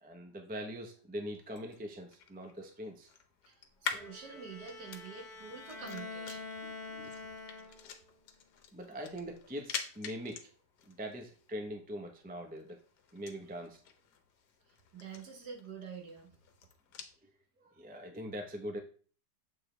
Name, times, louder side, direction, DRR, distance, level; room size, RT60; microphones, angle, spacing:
voice 1, 0.0-3.1 6.9-7.1 8.7-10.5 10.9-12.8 13.1-13.8 17.2-17.3 17.6-18.8, equal, 10° right, 3 dB, 0.5 m, -42 dB
sound 1, 1.3-17.2, left 7 dB, 70° left, 1.4 m, -47 dB
voice 2, 3.5-6.5 14.7-16.4, right 6 dB, 65° right, 1 dB, 1.9 m, -47 dB
Bowed string instrument, 3.9-8.1, left 3 dB, 30° left, 1.2 m, -46 dB
7.4 x 4.6 x 3.3 m, 0.40 s
omnidirectional pair, 1.9 m